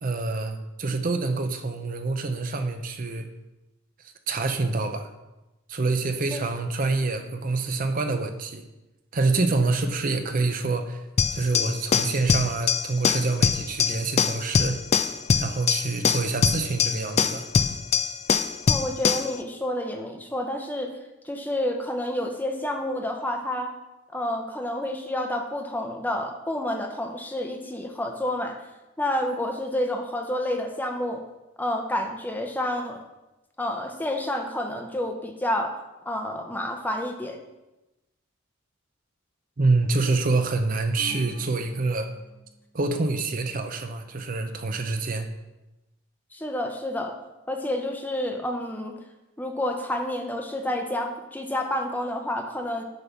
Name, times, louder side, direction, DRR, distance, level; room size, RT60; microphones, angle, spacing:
voice 1, 0.0-3.3 4.3-5.1 5.7-8.6 9.1-11.0 11.3-14.8 15.4-17.5 39.6-42.1 42.7-45.3, right 3 dB, 40° right, 7 dB, 0.6 m, -26 dB
sound 1, 11.2-19.3, left 6 dB, 35° left, 0.3 m, -23 dB
voice 2, 18.7-20.9 21.2-23.7 24.1-28.6 29.0-31.2 31.6-33.0 33.6-35.7 36.1-37.4 46.3-47.1 47.5-48.9 49.4-52.8, left 1 dB, 10° left, 3 dB, 0.7 m, -29 dB
sound 2, 41.0-42.6, equal, 60° left, 1.0 m, -45 dB
8.0 x 3.5 x 5.8 m, 1.0 s
head